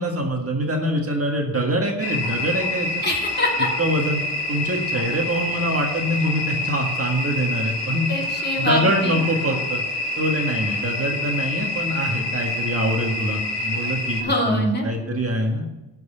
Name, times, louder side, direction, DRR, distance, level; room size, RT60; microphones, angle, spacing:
voice 1, 0.0-3.0 3.8-4.2 4.5-8.1 8.6-9.8 10.2-15.6, equal, 35° right, 1 dB, 1.8 m, -24 dB
sound 1, 2.0-14.2, left 1 dB, 70° left, 2.0 m, -27 dB
voice 2, 3.0-3.7 8.1-9.1 14.2-14.9, left 1 dB, 25° left, -1 dB, 2.7 m, -24 dB
13.0 x 4.7 x 8.3 m, 1.0 s
cardioid pair, 100°, 41 cm